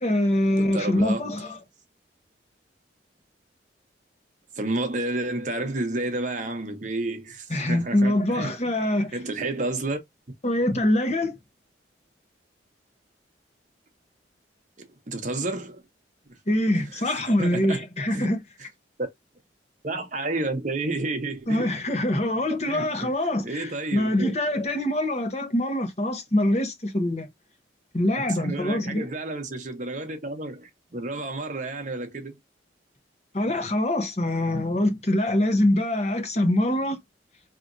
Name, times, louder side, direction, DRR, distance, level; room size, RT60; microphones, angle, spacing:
voice 1, 0.0-1.6 7.5-9.1 10.4-11.4 16.5-18.4 21.5-27.3 27.9-29.1 33.3-37.0, left 1 dB, 35° left, 0.9 m, -24 dB
voice 2, 0.6-1.3 4.6-8.5 9.1-10.0 14.8-15.8 16.3-16.4 16.9-17.1 17.4-18.3 19.8-21.7 22.7-23.1 23.4-24.3 28.2-32.4, right 2 dB, 40° right, 0.9 m, -31 dB
4.8 x 2.9 x 2.6 m
head